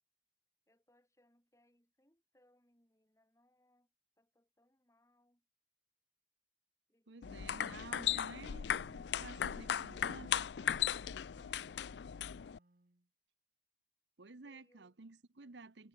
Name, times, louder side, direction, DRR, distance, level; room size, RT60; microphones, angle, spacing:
voice 1, 0.7-5.5 6.9-8.2 14.3-15.0, left 1 dB, 15° left, 6.2 m, -74 dB
voice 2, 7.1-8.7 8.9-10.5 14.2-15.9, right 3 dB, 90° right, 1.1 m, -52 dB
sound 1, 7.2-12.6, left 9 dB, 80° left, 0.4 m, -37 dB
Wind instrument woodwind instrument, 7.2-13.1, right 2 dB, 50° right, 1.4 m, -65 dB
head